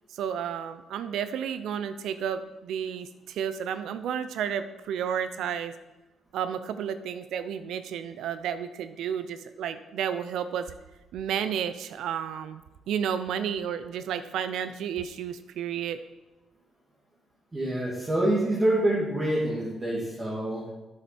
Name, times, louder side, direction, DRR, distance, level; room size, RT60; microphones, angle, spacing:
voice 1, 0.1-5.7 6.3-10.7 11.1-12.6 12.9-16.0, right 8 dB, 80° right, 11 dB, 0.5 m, -32 dB
voice 2, 17.5-20.7, right 1 dB, 25° right, -6 dB, 2.4 m, -26 dB
8.7 x 7.3 x 4.3 m, 1.1 s
cardioid pair, 90°, 0 cm